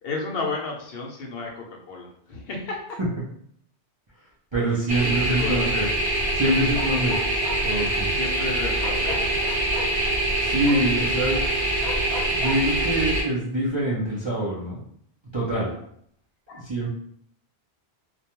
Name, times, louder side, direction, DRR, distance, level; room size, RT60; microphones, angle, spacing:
voice 1, 0.0-3.0 5.0-5.8 8.1-9.2 11.0-11.6 15.6-15.7 16.5-16.6, left 3 dB, 70° left, 0 dB, 0.8 m, -33 dB
voice 2, 4.5-5.9 6.3-7.2 7.6-8.1 10.4-11.5 11.9-14.8 15.3-15.8 16.5-16.9, right 1 dB, 40° right, -7 dB, 0.4 m, -25 dB
sound 1, 4.9-13.2, right 1 dB, 80° right, 1.1 m, -24 dB
Bark, 6.7-7.6 8.8-9.9 10.6-10.8 11.8-12.6, left 3 dB, 30° left, 0.8 m, -34 dB
2.3 x 2.1 x 2.8 m, 0.66 s
omnidirectional pair, 1.1 m